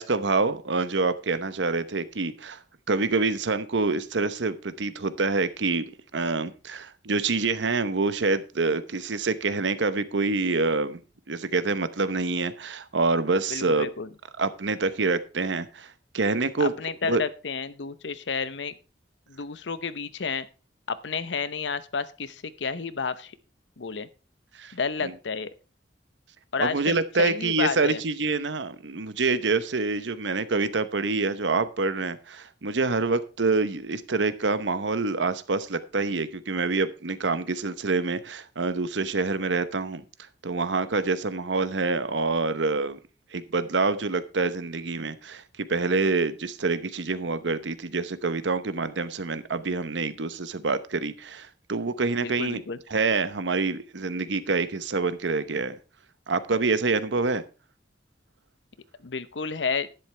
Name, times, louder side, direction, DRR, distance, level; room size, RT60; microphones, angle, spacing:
voice 1, 0.0-2.6 2.9-5.8 6.1-11.0 11.3-13.9 14.4-16.7 17.0-17.2 24.6-24.7 25.0-25.1 26.6-40.0 40.4-43.0 43.3-45.4 45.7-52.6 52.9-55.8 56.3-57.4, right 3 dB, 85° right, 13 dB, 0.9 m, -26 dB
voice 2, 13.5-14.1 16.6-18.7 19.3-20.5 20.9-23.3 23.8-24.1 24.7-25.5 26.5-28.0 52.2-52.8 59.0-59.9, left 5 dB, 80° left, 14 dB, 0.8 m, -31 dB
11.0 x 10.5 x 3.3 m, 0.33 s
head